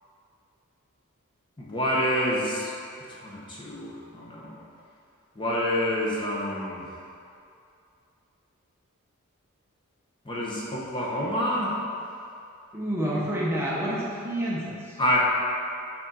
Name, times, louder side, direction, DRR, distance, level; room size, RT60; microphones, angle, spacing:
voice 1, 1.6-2.7 3.2-4.6 5.4-6.9 10.2-11.8 15.0-15.2, equal, 20° left, -5 dB, 0.9 m, -27 dB
voice 2, 12.7-15.0, right 1 dB, 10° right, -7 dB, 0.7 m, -29 dB
6.9 x 4.4 x 3.9 m, 2.5 s
head